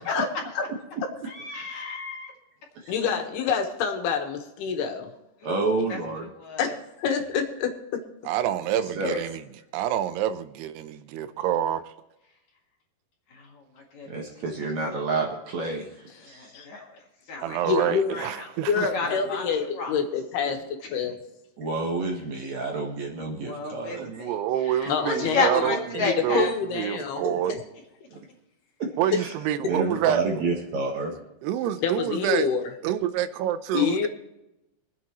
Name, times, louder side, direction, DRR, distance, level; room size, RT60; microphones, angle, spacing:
voice 1, 1.3-2.3 5.4-5.5 5.9-6.0 6.4-6.8 13.3-14.4 16.2-17.0 17.3-18.5 18.8-19.4 19.7-19.9 23.3-24.4 24.6-26.5, left 4 dB, 50° left, 0 dB, 2.8 m, -32 dB
voice 2, 1.9-2.2 2.8-2.9 5.4-6.3 8.7-9.2 14.1-16.8 21.6-24.2 28.1-28.2 28.8-28.9 29.2-29.3 29.7-31.2, right 3 dB, 55° right, 0 dB, 2.3 m, -30 dB
voice 3, 2.9-5.1 6.6-6.7 7.0-8.0 16.5-16.7 17.6-18.1 18.7-21.2 24.9-27.2 31.8-32.7 33.7-34.1, left 6 dB, 75° left, 4 dB, 3.4 m, -27 dB
voice 4, 8.3-9.4 9.7-11.9 17.4-18.9 24.0-27.5 29.0-30.2 31.4-32.5 32.8-34.1, right 11 dB, 85° right, 12 dB, 2.8 m, -27 dB
24.5 x 8.5 x 3.1 m, 0.93 s
omnidirectional pair, 4.7 m